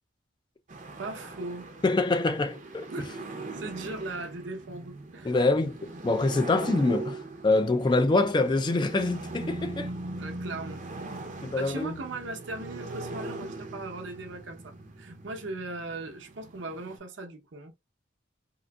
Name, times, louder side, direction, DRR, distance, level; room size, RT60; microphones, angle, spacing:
sound 1, 0.7-17.0, right 2 dB, 40° right, 0.6 m, -40 dB
voice 1, 1.0-1.7 2.9-5.3 10.2-10.8 11.6-17.7, right 2 dB, 75° right, 0.8 m, -38 dB
voice 2, 1.8-3.1 5.2-5.8 6.0-9.9 11.4-12.0, left 2 dB, 25° left, 0.3 m, -25 dB
3.8 x 2.5 x 2.3 m
head